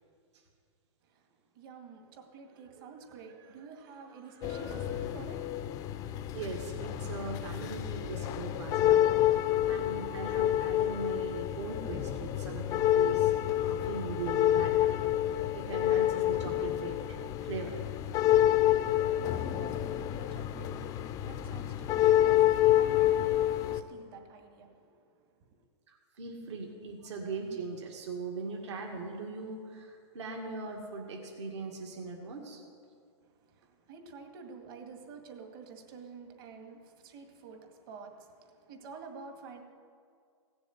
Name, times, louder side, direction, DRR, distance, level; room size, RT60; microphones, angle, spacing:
voice 1, 1.5-5.6 18.2-25.7 33.2-39.6, right 5 dB, 50° right, 4 dB, 2.1 m, -50 dB
sound 1, 4.4-23.8, left 12 dB, 25° left, 0.5 m, -28 dB
voice 2, 6.3-9.1 9.4-13.3 13.6-17.2 17.4-17.8 25.9-32.6, right 4 dB, 65° right, 1 dB, 2.2 m, -40 dB
16.5 x 7.0 x 9.3 m, 2.2 s
hypercardioid pair, 150°, 16 cm